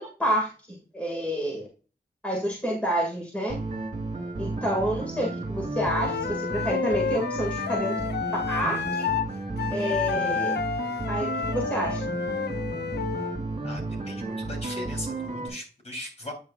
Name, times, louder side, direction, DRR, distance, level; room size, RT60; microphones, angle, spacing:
voice 1, 0.0-1.7 2.2-3.6 4.4-7.9 8.5-9.1 9.7-10.6 11.1-12.0, equal, 5° left, -2 dB, 2.0 m, -29 dB
sound 1, 3.5-15.5, right 2 dB, 40° right, 2.8 m, -33 dB
Wind instrument woodwind instrument, 5.7-9.3 9.6-13.4, left 7 dB, 65° left, 0.4 m, -30 dB
voice 2, 13.6-16.3, left 1 dB, 35° left, 0 dB, 3.4 m, -39 dB
8.9 x 6.4 x 2.4 m, 0.35 s
wide cardioid pair, 115°, 18 cm